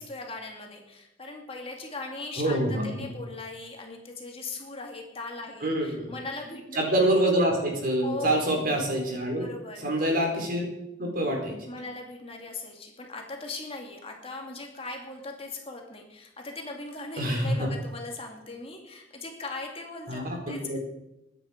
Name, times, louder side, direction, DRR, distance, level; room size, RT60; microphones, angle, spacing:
voice 1, 0.0-6.8 8.0-8.5 9.4-9.9 11.7-20.8, left 3 dB, 30° left, 2 dB, 2.3 m, -39 dB
voice 2, 2.4-3.1 5.6-6.1 6.8-9.5 9.8-10.7 11.0-11.6 17.2-17.7 20.1-20.8, right 1 dB, 50° right, 1 dB, 4.3 m, -26 dB
22.0 x 9.5 x 5.2 m, 0.87 s
head